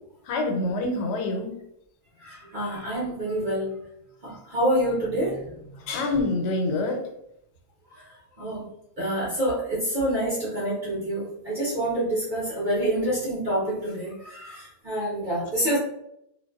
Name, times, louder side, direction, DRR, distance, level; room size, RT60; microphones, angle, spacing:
voice 1, 0.3-1.5 5.9-7.0, left 2 dB, 90° left, 3 dB, 1.2 m, -26 dB
voice 2, 2.2-3.7 4.2-5.6 8.4-8.6 9.0-15.8, right 1 dB, 45° right, -8 dB, 0.6 m, -27 dB
2.5 x 2.2 x 2.2 m, 0.78 s
omnidirectional pair, 1.7 m